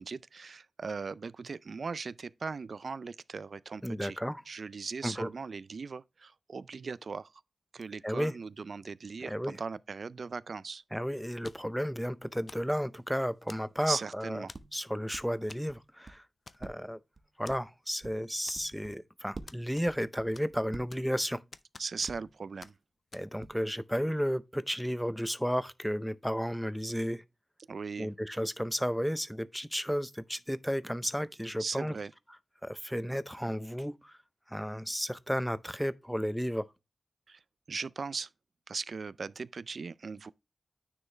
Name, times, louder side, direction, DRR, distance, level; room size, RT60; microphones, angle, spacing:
voice 1, 0.0-4.2 4.5-7.3 7.7-10.8 13.9-14.5 21.8-22.7 27.7-28.1 31.6-32.1 37.3-37.4 37.7-38.3 38.7-40.3, right 4 dB, 70° right, 0.3 m, -38 dB
voice 2, 3.8-4.4 5.0-5.3 8.0-8.3 9.2-9.6 10.9-14.4 14.7-16.2 16.6-17.0 17.4-21.4 23.1-27.2 28.0-32.0 32.6-34.2 34.5-36.7, equal, ahead, 0.5 m, -33 dB
sound 1, 7.0-7.1 11.2-11.4 13.7-14.0 14.5-15.2 15.7-16.2 16.6-19.0 19.3-21.2 22.0-22.5 23.4-23.8, right 3 dB, 45° right, 0.8 m, -49 dB
sound 2, 11.4-11.8 12.5-12.7 13.5-13.9 14.5-14.8 15.5-15.7 16.0-16.1 16.5-16.9 17.5-17.6 18.5-18.9 19.5-20.1 20.3-21.2 21.5-22.3 22.6-22.7 23.1-23.3, left 3 dB, 55° left, 0.5 m, -51 dB
9.7 x 4.5 x 3.2 m
wide cardioid pair, 105°, 0 cm